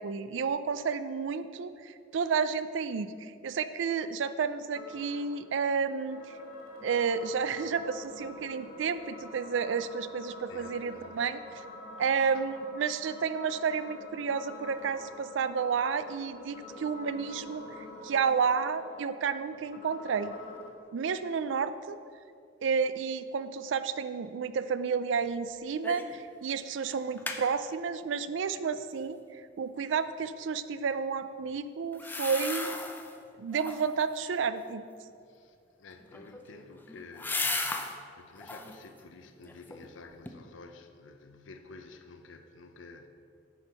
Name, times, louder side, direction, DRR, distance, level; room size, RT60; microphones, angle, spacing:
voice 1, 0.0-6.2 6.8-11.6 12.0-17.7 18.0-20.3 20.9-22.0 22.6-29.2 29.6-32.8 33.4-34.8, right 6 dB, 75° right, 0.4 m, -31 dB
sound 1, 4.7-20.7, left 2 dB, 55° left, 1.4 m, -47 dB
voice 2, 10.5-11.2 12.0-12.4 16.7-16.8 35.3-43.1, left 3 dB, 85° left, 0.6 m, -51 dB
sound 2, 25.8-26.2 26.5-26.6 26.9-27.4 31.9-33.1 33.5-34.0 36.0-38.0 38.4-38.8 39.3-39.9 40.3-40.4, left 3 dB, 10° left, 0.5 m, -36 dB
9.5 x 4.5 x 5.3 m
head